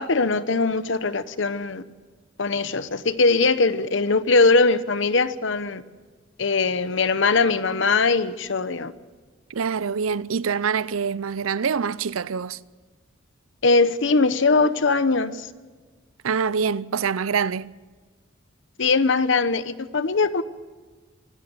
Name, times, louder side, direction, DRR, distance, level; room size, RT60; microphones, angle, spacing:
voice 1, 0.0-1.8 2.4-5.8 6.4-8.9 13.6-15.5 18.8-20.4, left 3 dB, 65° left, 0.9 m, -21 dB
voice 2, 9.5-12.6 16.2-17.7, right 6 dB, 90° right, 0.6 m, -25 dB
25.0 x 13.5 x 8.1 m
head